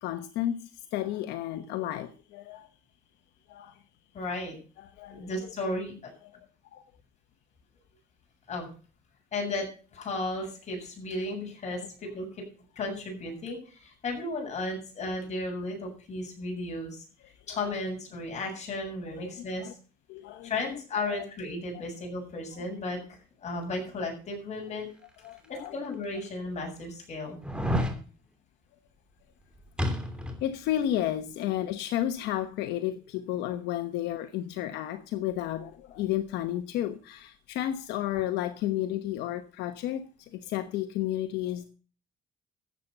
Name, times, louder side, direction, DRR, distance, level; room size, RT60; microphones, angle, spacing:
voice 1, 0.0-2.7 3.5-3.8 4.8-5.3 6.2-6.4 6.7-6.8 17.5-17.7 19.1-19.7 20.1-20.6 21.1-21.2 23.5-23.6 25.2-25.7 30.4-41.7, left 12 dB, 90° left, 1.1 m, -32 dB
voice 2, 4.1-4.5 5.1-6.1 8.5-8.7 9.3-9.7 9.9-12.4 12.8-17.0 17.5-19.8 20.4-24.9 25.5-27.4 31.4-31.6, left 2 dB, 40° left, 7.6 m, -34 dB
sound 1, 25.4-25.5 26.2-26.3 27.4-28.0 29.8-30.5 30.8-30.9, equal, 5° right, 2.9 m, -29 dB
13.5 x 8.4 x 6.7 m
cardioid pair, 110°, 17 cm